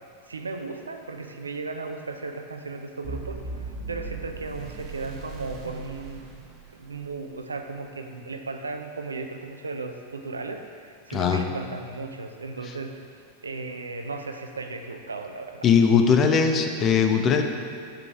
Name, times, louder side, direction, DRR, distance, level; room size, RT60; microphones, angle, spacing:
voice 1, 0.3-6.2 6.7-13.1 13.4-15.7, right 3 dB, 75° right, 5 dB, 0.5 m, -36 dB
sound 1, 3.0-7.2, right 3 dB, 35° right, 0.7 m, -38 dB
voice 2, 11.1-11.4 15.6-17.4, left 6 dB, 30° left, 5 dB, 0.5 m, -20 dB
5.0 x 4.7 x 5.8 m, 2.2 s
figure-of-eight pair, 90°, 0 cm